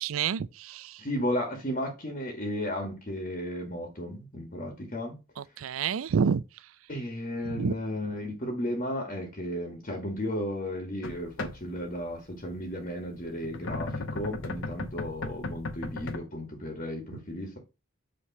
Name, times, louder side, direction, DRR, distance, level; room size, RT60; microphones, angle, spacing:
voice 1, 0.0-1.1 5.4-6.7 7.4-7.7 13.9-14.0 17.1-17.2, right 6 dB, 90° right, 0.4 m, -29 dB
voice 2, 1.0-5.2 6.9-17.6, left 1 dB, 40° left, 1.4 m, -34 dB
sound 1, 11.0-12.0 13.3-16.2, left 3 dB, 70° left, 0.9 m, -36 dB
8.4 x 3.2 x 5.8 m
head